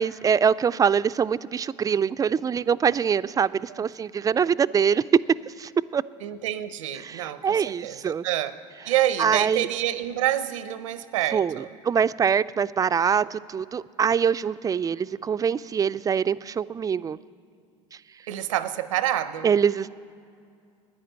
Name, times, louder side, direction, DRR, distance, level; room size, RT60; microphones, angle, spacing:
voice 1, 0.0-6.0 7.0-8.2 9.2-9.7 11.3-17.2 19.4-19.9, right 7 dB, 20° right, 15 dB, 0.3 m, -24 dB
voice 2, 6.2-11.7 18.3-19.5, right 12 dB, 85° right, 14 dB, 0.6 m, -28 dB
10.0 x 9.5 x 10.0 m, 2.4 s
hypercardioid pair, 75°, 16 cm